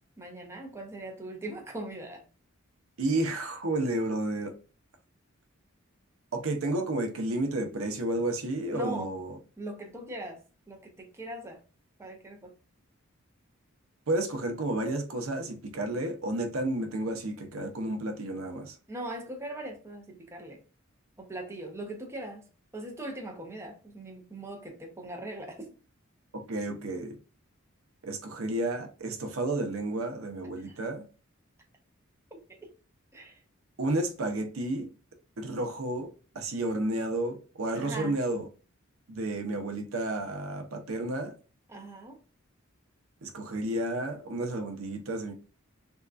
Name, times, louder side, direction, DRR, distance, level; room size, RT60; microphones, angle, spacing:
voice 1, 0.2-2.2 8.7-9.1 9.6-10.4 10.7-11.6 12.0-12.5 18.9-20.6 21.2-22.4 22.7-25.7 30.6-30.8 32.6-32.7 33.1-33.4 37.7-38.2 41.7-42.2, right 1 dB, 15° right, 0.6 m, -40 dB
voice 2, 3.0-4.5 6.3-9.4 14.1-18.8 26.5-27.2 28.0-31.0 33.8-34.9 35.4-36.1 36.3-38.5 39.1-41.3 43.2-45.3, right 1 dB, 90° right, 0.7 m, -31 dB
3.5 x 2.3 x 2.4 m
head